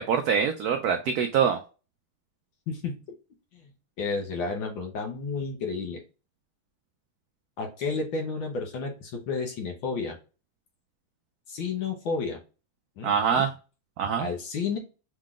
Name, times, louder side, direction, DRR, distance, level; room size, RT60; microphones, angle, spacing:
voice 1, 0.0-1.6 13.0-13.5 14.0-14.3, right 7 dB, 85° right, 6 dB, 0.8 m, -24 dB
voice 2, 2.7-3.0 3.5-3.7 4.0-6.0 7.6-10.2 11.5-12.4 13.0-13.5 14.2-14.8, left 4 dB, 70° left, 2 dB, 1.7 m, -31 dB
5.6 x 3.7 x 2.4 m, 0.34 s
omnidirectional pair, 2.2 m